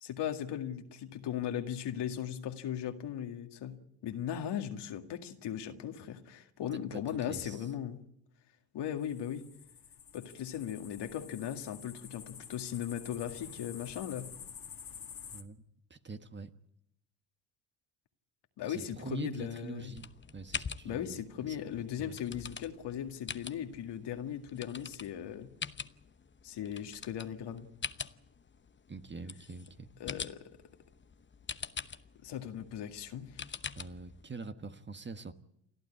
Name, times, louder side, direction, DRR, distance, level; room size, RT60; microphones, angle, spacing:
voice 1, 0.0-3.8 4.0-8.0 8.7-9.4 10.1-14.3 18.6-19.9 20.8-25.5 26.4-27.7 30.0-30.4 32.2-33.4, left 10 dB, 60° left, 6 dB, 2.1 m, -38 dB
voice 2, 7.3-7.6 15.3-15.6 15.9-16.5 18.7-21.6 22.0-22.2 28.9-29.9 33.7-35.3, right 4 dB, 25° right, 9 dB, 1.4 m, -44 dB
sound 1, 9.0-15.4, left 7 dB, 45° left, 2.1 m, -49 dB
sound 2, 20.0-34.2, left 6 dB, 25° left, 1.0 m, -45 dB
29.5 x 12.0 x 8.6 m, 0.77 s
hypercardioid pair, 60°, 46 cm